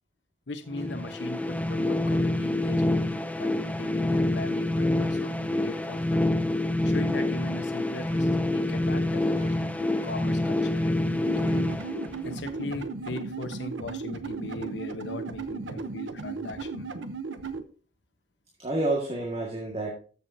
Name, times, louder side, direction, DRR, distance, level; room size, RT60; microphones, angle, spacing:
voice 1, 0.5-3.1 3.4-6.3 6.8-11.7 12.2-16.9, left 2 dB, 75° left, 9 dB, 1.1 m, -39 dB
sound 1, 0.7-12.6, left 1 dB, 10° left, 0.5 m, -27 dB
voice 2, 9.3-10.1 18.6-19.9, right 2 dB, 35° right, -2 dB, 1.8 m, -31 dB
sound 2, 11.3-17.6, right 4 dB, 90° right, 0.9 m, -36 dB
13.5 x 7.0 x 2.8 m, 0.40 s
head